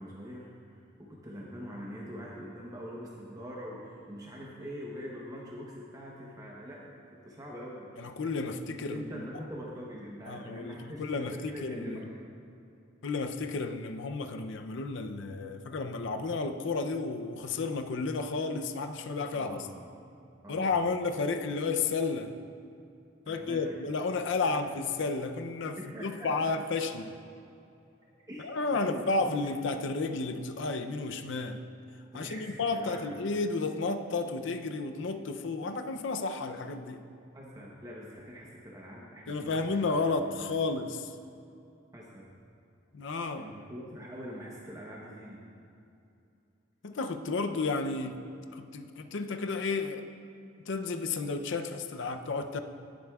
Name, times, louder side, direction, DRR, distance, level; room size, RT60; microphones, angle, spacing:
voice 1, 0.0-6.9 7.2-7.9 8.7-12.1 19.3-19.9 20.4-20.9 23.3-23.6 24.4-24.5 25.8-26.5 28.3-29.5 32.1-33.1 37.3-39.8 41.9-42.3 43.4-45.4, equal, 20° right, -4 dB, 0.9 m, -43 dB
voice 2, 8.0-9.3 10.3-12.0 13.0-19.7 20.5-22.3 23.3-27.2 28.4-31.6 32.1-37.0 39.3-41.1 42.9-43.5 46.8-48.2 48.5-50.1 50.7-52.6, left 3 dB, 65° left, 7 dB, 0.5 m, -32 dB
18.5 x 7.7 x 2.3 m, 2.6 s
head